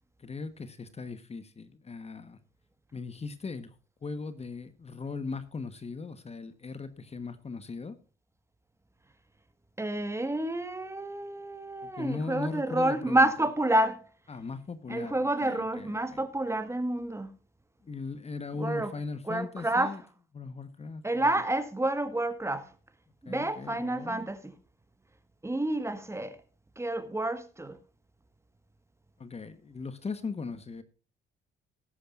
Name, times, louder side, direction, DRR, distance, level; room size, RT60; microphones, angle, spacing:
voice 1, 0.2-2.4 2.9-3.7 4.0-8.0 11.8-13.3 14.3-16.2 17.8-20.0 20.3-21.3 23.2-24.3 29.2-30.8, left 4 dB, 30° left, 1.2 m, -39 dB
voice 2, 9.8-14.1 14.9-17.3 18.6-18.9 19.3-20.0 21.0-22.7 23.2-24.5 25.4-26.4 26.8-27.8, right 1 dB, 15° right, 1.5 m, -29 dB
19.0 x 9.9 x 2.5 m
cardioid pair, 90°, 20 cm